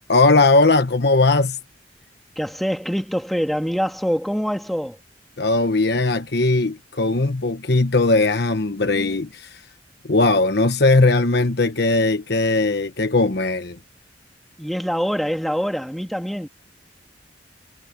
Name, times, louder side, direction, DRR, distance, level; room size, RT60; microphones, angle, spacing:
voice 1, 0.1-1.6 5.4-9.6 10.0-13.8, left 3 dB, 65° left, 1.2 m, -18 dB
voice 2, 2.4-5.0 14.6-16.5, equal, ahead, 2.2 m, -24 dB
head